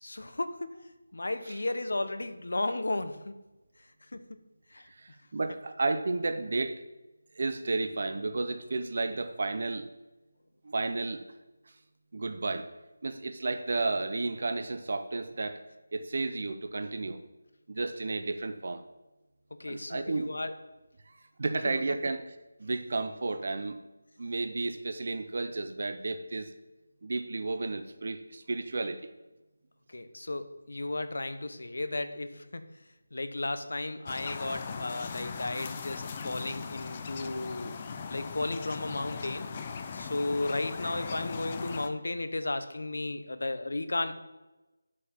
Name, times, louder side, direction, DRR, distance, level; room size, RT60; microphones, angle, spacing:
voice 1, 0.0-0.8 1.1-3.3 4.1-4.4 4.7-4.9 19.5-20.5 21.7-21.8 29.9-32.7 33.1-37.7 38.1-39.5 39.9-44.1, left 2 dB, 70° left, 10 dB, 0.9 m, -34 dB
voice 2, 4.9-6.8 7.3-9.9 10.6-11.2 12.1-12.7 13.0-15.6 15.9-17.2 17.7-18.8 19.7-20.4 21.1-21.2 21.4-23.8 24.2-26.5 27.0-29.1, right 3 dB, 40° right, 9 dB, 0.6 m, -32 dB
sound 1, 34.1-41.9, left 5 dB, 20° left, 0.4 m, -39 dB
7.4 x 6.5 x 5.8 m, 1.1 s
figure-of-eight pair, 175°, 0 cm